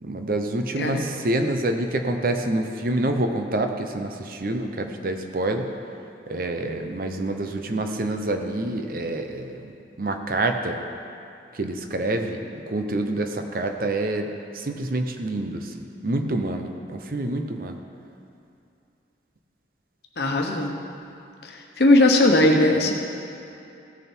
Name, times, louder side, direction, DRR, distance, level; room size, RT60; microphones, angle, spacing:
voice 1, 0.0-5.7 6.3-9.7 10.0-10.8 11.5-17.8, right 2 dB, 50° right, 5 dB, 0.7 m, -27 dB
voice 2, 0.8-1.1 20.2-20.7 21.4-21.5 21.8-22.9, left 1 dB, 65° left, 2 dB, 1.1 m, -18 dB
16.0 x 6.8 x 4.5 m, 2.6 s
head